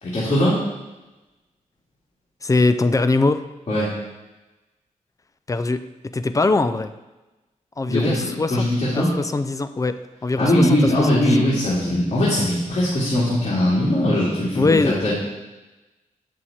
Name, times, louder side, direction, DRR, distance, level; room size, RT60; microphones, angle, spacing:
voice 1, 0.0-0.6 3.7-3.9 7.9-9.1 10.4-14.8 15.0-15.1, left 1 dB, 50° left, -8 dB, 2.4 m, -20 dB
voice 2, 2.4-3.4 5.5-5.8 6.1-6.9 7.8-8.6 8.9-11.5 14.6-15.0, left 3 dB, 25° left, 10 dB, 0.4 m, -22 dB
8.8 x 6.3 x 4.2 m, 1.1 s
wide cardioid pair, 105°, 13 cm